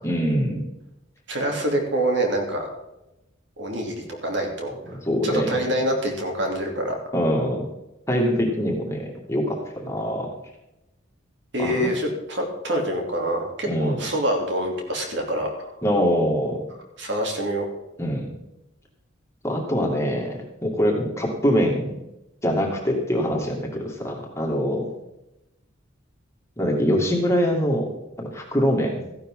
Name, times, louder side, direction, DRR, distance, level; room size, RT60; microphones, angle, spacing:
voice 1, 0.0-0.7 5.0-5.6 7.1-7.7 8.1-10.3 11.6-11.9 13.7-14.0 15.8-16.6 18.0-18.3 19.4-22.0 22.4-24.9 26.6-27.9 28.2-29.0, equal, 15° left, 0 dB, 2.2 m, -23 dB
voice 2, 1.3-2.7 3.6-5.0 5.2-7.0 11.5-15.7 17.0-17.7, right 1 dB, 60° right, 1 dB, 3.0 m, -26 dB
14.5 x 11.5 x 3.8 m, 0.91 s
head